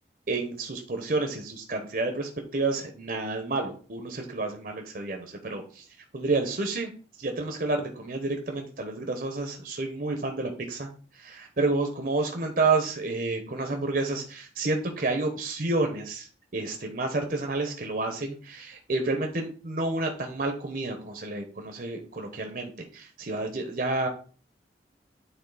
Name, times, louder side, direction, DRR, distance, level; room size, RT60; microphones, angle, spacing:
voice 1, 0.3-5.8 6.1-6.9 7.2-10.9 11.1-24.1, right 3 dB, 50° right, 3 dB, 0.9 m, -30 dB
9.0 x 3.9 x 4.0 m, 0.40 s
head